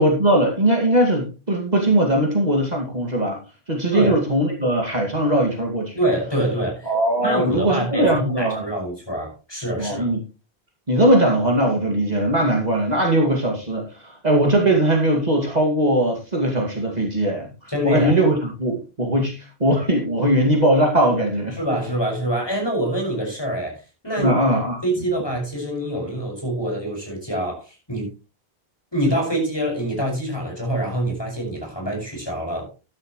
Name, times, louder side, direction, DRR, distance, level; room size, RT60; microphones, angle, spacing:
voice 1, 0.0-3.4 3.7-6.0 6.9-8.6 9.8-10.2 10.9-21.6 24.2-24.8, right 1 dB, 40° right, 0 dB, 2.5 m, -20 dB
voice 2, 6.0-6.9 7.2-10.1 17.7-18.2 21.6-24.4 24.8-28.1 28.9-32.7, right 1 dB, 25° left, 0 dB, 6.3 m, -25 dB
13.0 x 11.5 x 3.2 m, 0.31 s
omnidirectional pair, 1.0 m